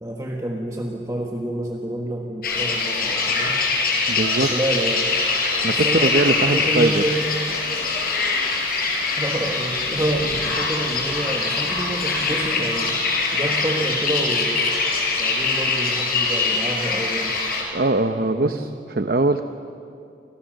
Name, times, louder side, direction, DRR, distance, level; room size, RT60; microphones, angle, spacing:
voice 1, 0.0-3.5 4.2-5.1 5.7-6.1 6.4-7.3 9.2-13.0 13.3-14.8 15.2-17.4 18.2-18.7, right 1 dB, 20° right, 0 dB, 1.5 m, -28 dB
sound 1, 2.4-17.6, left 4 dB, 55° left, 5.2 m, -23 dB
voice 2, 4.1-4.5 5.6-7.0 17.7-19.4, right 2 dB, 55° right, 8 dB, 0.8 m, -21 dB
28.5 x 26.5 x 6.5 m, 2.5 s
head